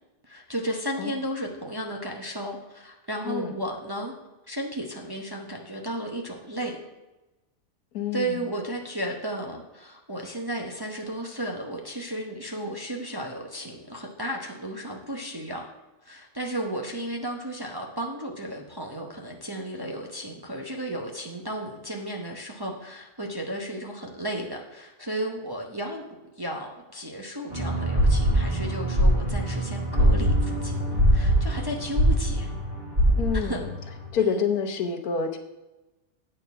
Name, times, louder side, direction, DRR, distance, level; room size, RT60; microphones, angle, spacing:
voice 1, 0.2-4.1 4.5-6.8 8.1-15.7 16.0-26.0 26.4-32.5 33.3-33.6 34.2-34.5, right 1 dB, 20° right, 0 dB, 0.7 m, -34 dB
voice 2, 3.3-3.6 7.9-8.3 33.2-33.7 34.1-35.4, left 6 dB, 85° left, 5 dB, 1.4 m, -27 dB
sound 1, 27.5-34.1, equal, 40° right, 3.7 m, -23 dB
8.9 x 4.5 x 6.8 m, 1.0 s
omnidirectional pair, 1.5 m